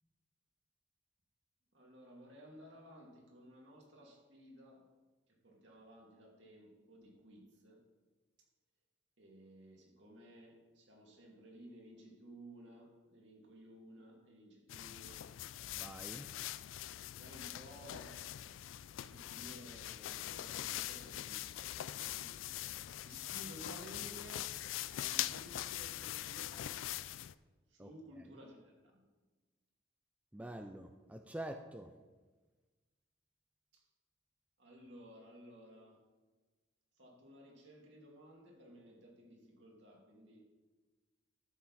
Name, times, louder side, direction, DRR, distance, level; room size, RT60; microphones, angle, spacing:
voice 1, 1.7-4.9 5.3-7.8 9.2-15.2 17.2-18.2 19.0-22.3 23.0-24.6 24.9-26.8 27.7-29.1 33.7-33.8 34.6-36.0 37.0-40.4, equal, 65° right, -2 dB, 2.5 m, -56 dB
sound 1, 14.7-27.3, left 13 dB, 90° left, 0.3 m, -43 dB
voice 2, 15.7-16.3 27.8-27.9 30.3-31.9, right 1 dB, 10° right, 5 dB, 0.4 m, -46 dB
13.0 x 6.8 x 4.1 m, 1.3 s
head